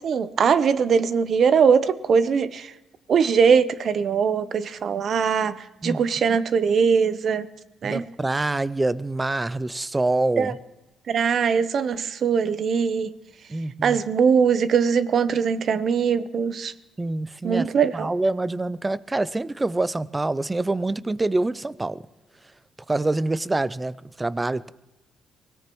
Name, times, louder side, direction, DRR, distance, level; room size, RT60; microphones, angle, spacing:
voice 1, 0.0-2.7 3.1-5.6 5.8-7.5 7.8-8.0 10.4-10.5 11.1-13.1 13.8-16.7 17.4-18.1, right 6 dB, 55° right, 14 dB, 0.8 m, -21 dB
voice 2, 7.8-10.6 13.5-14.0 17.0-22.0 22.9-24.7, right 2 dB, 20° right, 18 dB, 0.5 m, -26 dB
24.0 x 17.5 x 3.1 m, 1.1 s
cardioid pair, 90°, 0 cm